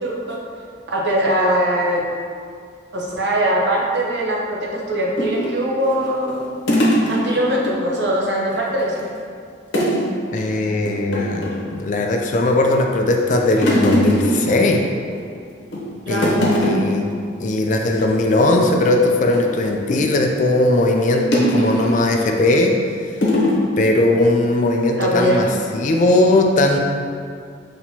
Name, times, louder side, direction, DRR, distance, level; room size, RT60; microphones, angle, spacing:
voice 1, 0.0-0.4 0.9-2.0 2.9-6.4 7.1-9.0 16.1-16.3 21.4-21.7 25.0-25.4, right 1 dB, 60° right, -3 dB, 0.8 m, -21 dB
sound 1, 5.2-7.7 8.1-8.2 8.5-9.2 9.7-10.1 10.4-10.5 10.8-11.7 12.2-12.7 13.1-15.2 15.6-15.9 16.1-17.0 17.3-17.5 17.8-18.0 18.5-20.3 21.3-22.0 22.6-22.7 23.2-23.6, equal, 70° left, 0.9 m, -21 dB
voice 2, 10.3-14.8 16.1-17.1 17.4-22.7 23.8-25.5 25.7-26.8, left 2 dB, 40° left, 2 dB, 0.3 m, -18 dB
5.9 x 2.9 x 2.8 m, 2.2 s
head